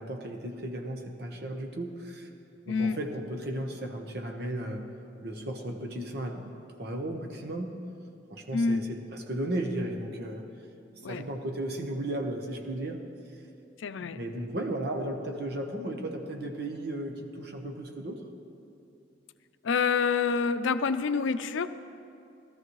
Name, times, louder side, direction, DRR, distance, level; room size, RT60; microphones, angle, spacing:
voice 1, 0.0-2.3 2.6-4.9 5.2-7.8 8.3-10.5 11.1-13.0 14.0-18.3, right 1 dB, 55° right, 3 dB, 1.1 m, -35 dB
voice 2, 8.5-8.9 11.0-11.2 13.8-14.2 19.6-21.7, left 5 dB, 85° left, 11 dB, 0.5 m, -27 dB
17.0 x 13.0 x 3.1 m, 2.6 s
head